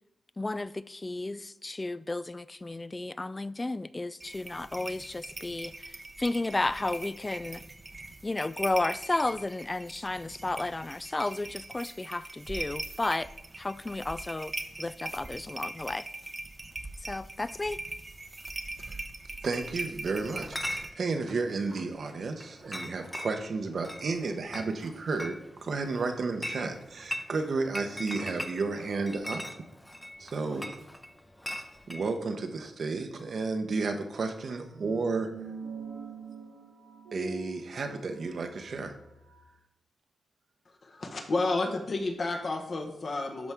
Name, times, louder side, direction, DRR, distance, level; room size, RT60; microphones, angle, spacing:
voice 1, 0.4-5.9 6.2-7.6 8.2-13.3 13.6-14.5 14.8-16.1 17.0-17.8, left 2 dB, 25° left, 0.3 m, -33 dB
sound 1, 4.2-20.9, right 2 dB, 30° right, 0.7 m, -41 dB
voice 2, 19.4-25.4 25.6-29.4 30.2-30.7 31.9-35.3 37.1-38.9, right 4 dB, 65° right, 0.9 m, -32 dB
Chatter / Chink clink, 20.4-32.1, left 1 dB, 10° left, 0.7 m, -41 dB
sound 2, 34.5-39.4, right 3 dB, 90° right, 1.8 m, -44 dB
voice 3, 40.8-43.5, left 2 dB, 55° left, 1.3 m, -31 dB
12.5 x 4.3 x 3.6 m
cardioid pair, 60°, 0 cm